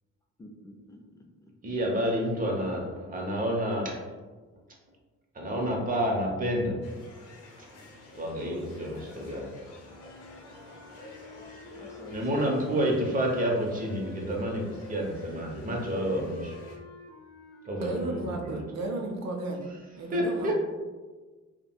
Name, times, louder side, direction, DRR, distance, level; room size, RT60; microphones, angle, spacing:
voice 1, 0.4-1.5 2.4-3.1 11.7-13.0, left 1 dB, 10° left, 1 dB, 0.4 m, -48 dB
voice 2, 1.6-4.1 5.3-6.8 7.6-7.7 8.1-9.5 12.1-16.6 17.6-18.6 20.1-20.5, equal, 30° right, 0 dB, 0.7 m, -29 dB
sound 1, 6.8-16.8, left 2 dB, 85° left, 0.7 m, -50 dB
sound 2, 9.8-18.5, left 3 dB, 35° left, 0.7 m, -49 dB
voice 3, 17.8-19.7 20.0-20.5, right 2 dB, 60° right, 2 dB, 0.5 m, -33 dB
3.4 x 2.1 x 2.3 m, 1.3 s
cardioid pair, 90°, 30 cm